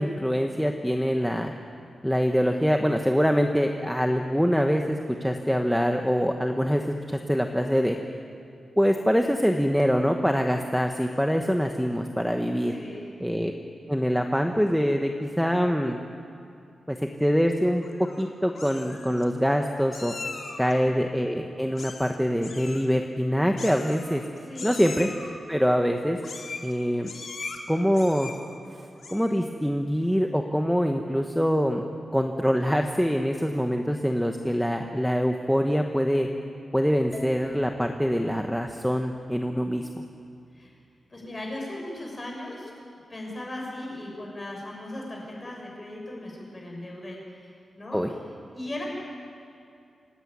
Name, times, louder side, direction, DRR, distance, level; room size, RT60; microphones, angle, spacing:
voice 1, 0.0-1.5 2.0-8.0 8.8-12.7 13.2-13.5 13.9-16.0 16.9-17.8 18.2-20.1 20.6-24.2 24.6-25.1 25.5-26.2 26.6-27.1 27.7-28.3 29.1-31.8 32.1-36.3 36.7-40.0 47.9-48.1, equal, ahead, 3 dB, 1.0 m, -24 dB
voice 2, 12.7-13.0 24.4-24.7 40.5-40.8 41.1-42.7 43.1-48.2 48.5-48.9, left 1 dB, 20° left, -1 dB, 6.3 m, -38 dB
Meow, 17.8-18.2 18.5-19.2 19.9-20.7 21.7-22.2 22.4-22.8 23.6-24.3 24.5-25.3 26.2-26.7 27.0-27.6 27.9-28.5 28.9-29.4, left 4 dB, 50° left, 2.6 m, -39 dB
sound 1, 37.1-41.2, equal, 25° right, 4.7 m, -50 dB
26.5 x 17.0 x 9.5 m, 2.5 s
wide cardioid pair, 175°, 0 cm